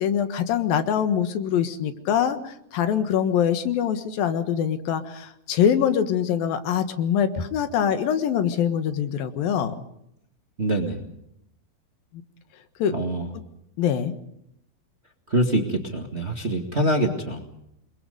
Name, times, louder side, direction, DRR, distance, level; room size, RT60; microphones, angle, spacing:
voice 1, 0.0-9.8 12.8-12.9 13.8-14.1, left 8 dB, 80° left, 9 dB, 3.2 m, -24 dB
voice 2, 10.6-11.0 12.9-13.3 15.3-17.6, right 1 dB, 25° right, 3 dB, 1.5 m, -25 dB
28.5 x 22.0 x 5.4 m, 0.78 s
omnidirectional pair, 4.1 m